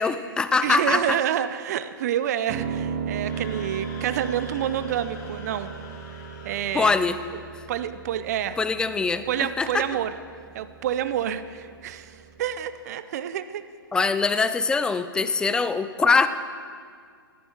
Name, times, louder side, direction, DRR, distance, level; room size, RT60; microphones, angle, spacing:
voice 1, 0.0-1.2 6.7-7.2 8.6-9.3 9.6-9.7 13.9-16.3, left 4 dB, 5° left, 12 dB, 0.4 m, -22 dB
voice 2, 0.6-5.7 6.4-7.0 7.7-8.6 9.3-10.1 10.5-13.6 14.3-14.4, right 10 dB, 45° right, 13 dB, 0.6 m, -28 dB
Piano, 2.5-12.6, right 7 dB, 30° right, 1.0 m, -37 dB
Screaming, 3.1-7.4, left 4 dB, 45° left, 1.6 m, -46 dB
15.5 x 13.5 x 4.5 m, 2.1 s
figure-of-eight pair, 120°, 12 cm